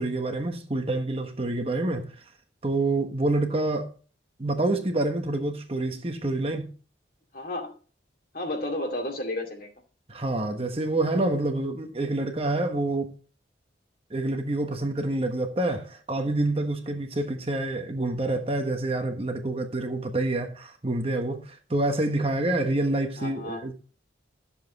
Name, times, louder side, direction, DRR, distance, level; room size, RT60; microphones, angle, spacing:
voice 1, 0.0-2.1 2.6-3.9 4.4-6.7 10.1-13.1 14.1-23.7, right 2 dB, 30° right, 1.2 m, -27 dB
voice 2, 7.3-7.7 8.3-9.7 23.2-23.6, left 1 dB, 50° left, 2.5 m, -32 dB
12.5 x 7.3 x 4.0 m
head